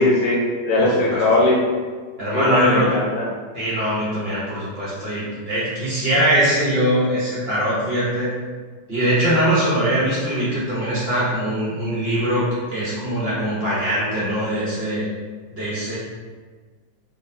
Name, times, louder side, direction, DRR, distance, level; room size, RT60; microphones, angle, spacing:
voice 1, 0.0-1.6 2.3-3.3, left 2 dB, 85° left, -3 dB, 1.3 m, -19 dB
voice 2, 0.8-1.2 2.2-2.8 3.5-8.3 8.9-15.1 15.6-16.0, equal, 40° right, -9 dB, 1.0 m, -22 dB
3.8 x 2.5 x 2.6 m, 1.5 s
omnidirectional pair, 1.9 m